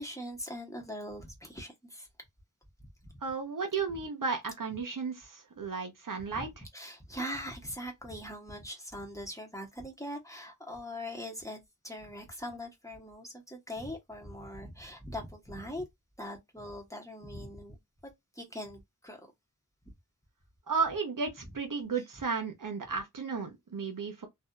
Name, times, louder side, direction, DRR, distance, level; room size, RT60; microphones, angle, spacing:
voice 1, 0.0-2.1 3.0-3.2 6.3-11.6 11.8-15.8 16.2-17.8 18.0-19.3 21.4-21.5 21.9-22.0, equal, 10° left, 1.0 m, -41 dB
voice 2, 3.2-6.5 20.7-24.3, right 5 dB, 80° right, 0.8 m, -34 dB
2.7 x 2.3 x 2.3 m
wide cardioid pair, 50°, 32 cm